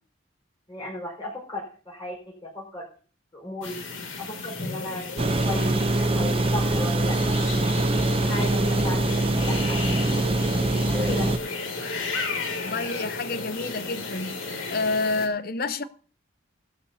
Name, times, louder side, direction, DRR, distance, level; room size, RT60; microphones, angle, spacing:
voice 1, 0.7-2.9 3.3-3.8 4.2-7.4 8.2-9.8 10.9-11.3, left 1 dB, 25° left, 4.9 m, -35 dB
sound 1, 3.6-15.3, left 3 dB, 90° left, 2.7 m, -34 dB
sound 2, 5.2-11.4, right 2 dB, 30° right, 0.6 m, -23 dB
voice 2, 12.6-14.4 14.7-15.8, left 3 dB, 50° left, 0.8 m, -28 dB
18.5 x 13.0 x 2.8 m
head